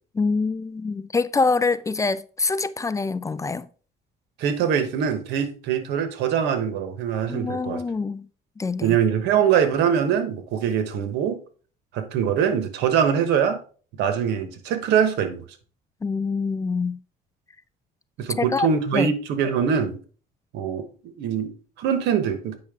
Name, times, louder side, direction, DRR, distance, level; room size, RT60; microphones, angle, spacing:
voice 1, 0.1-3.7 7.3-8.3 8.6-9.0 16.0-17.0 18.4-18.7 18.9-19.1, left 4 dB, 20° left, 0.3 m, -25 dB
voice 2, 4.4-7.8 8.8-11.4 11.9-13.6 14.0-15.4 18.2-20.0 20.5-22.6, right 8 dB, 85° right, 1.2 m, -23 dB
8.6 x 5.7 x 3.6 m
cardioid pair, 110°, 17 cm